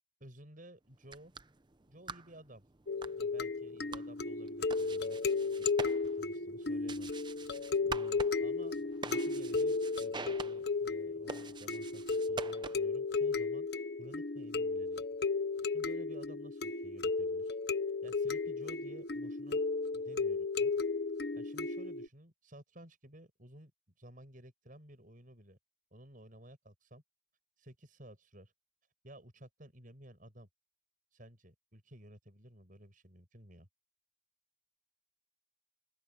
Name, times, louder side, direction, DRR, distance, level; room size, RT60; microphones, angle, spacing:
voice 1, 0.2-1.3 1.9-2.6 3.1-5.2 5.6-7.1 7.9-13.7 14.0-15.1 15.7-17.6 18.0-19.6 19.9-20.7 21.3-23.7 24.0-25.6 25.9-27.0 27.6-28.5 29.0-30.5 31.1-33.7, right 1 dB, 45° right, 7.9 m, -55 dB
sound 1, 0.9-13.0, right 4 dB, 25° right, 0.7 m, -47 dB
sound 2, 2.9-22.1, left 4 dB, 60° left, 1.2 m, -34 dB
open air
head